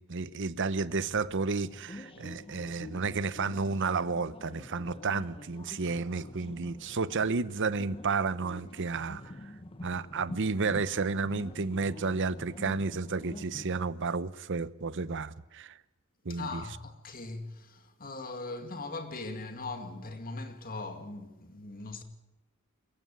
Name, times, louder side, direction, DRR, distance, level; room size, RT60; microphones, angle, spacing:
voice 1, 0.0-9.2 9.8-15.8 16.2-16.6, right 4 dB, 60° right, 0.8 m, -31 dB
sound 1, 0.7-13.7, left 1 dB, 25° left, 1.2 m, -47 dB
voice 2, 16.3-22.0, left 3 dB, 40° left, 2.1 m, -40 dB
23.5 x 15.0 x 9.6 m
head